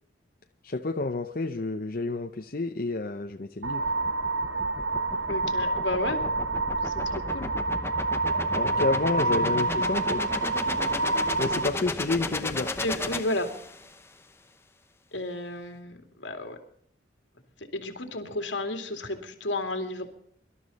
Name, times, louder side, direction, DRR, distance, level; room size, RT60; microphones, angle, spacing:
voice 1, 0.6-3.9 8.5-10.3 11.4-12.7, left 3 dB, 50° left, 4 dB, 0.7 m, -29 dB
sound 1, 3.6-11.7, right 2 dB, 90° right, 1.1 m, -28 dB
sound 2, 3.9-14.0, left 2 dB, 15° left, 0.8 m, -34 dB
voice 2, 5.3-6.2 6.8-7.5 9.3-9.7 12.8-13.5 15.1-16.6 17.7-20.1, left 2 dB, 75° left, 5 dB, 2.5 m, -32 dB
24.5 x 12.5 x 4.1 m, 0.66 s
head